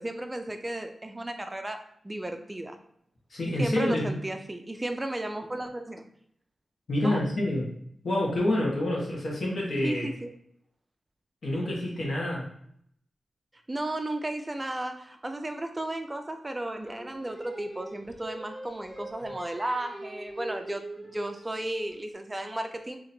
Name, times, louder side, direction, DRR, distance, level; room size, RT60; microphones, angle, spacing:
voice 1, 0.0-1.8 2.0-2.8 3.6-6.1 7.0-7.2 9.8-10.3 13.7-23.0, right 1 dB, 20° right, 6 dB, 0.4 m, -34 dB
voice 2, 3.3-4.1 6.9-7.7 8.0-10.0 11.4-12.4, left 1 dB, 70° left, -3 dB, 1.2 m, -27 dB
Singing, 16.8-22.1, right 1 dB, 10° left, 1.2 m, -43 dB
4.2 x 2.9 x 2.7 m, 0.68 s
wide cardioid pair, 75°, 0 cm